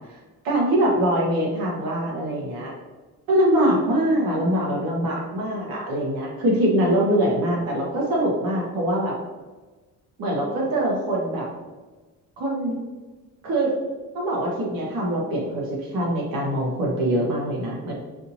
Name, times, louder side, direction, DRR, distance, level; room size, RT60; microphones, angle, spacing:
voice 1, 0.4-2.7 3.3-9.2 10.2-11.5 12.4-12.8 13.4-13.7 14.1-17.9, right 1 dB, 85° right, -3 dB, 1.4 m, -23 dB
5.1 x 2.8 x 2.8 m, 1.3 s
cardioid pair, 160°, 34 cm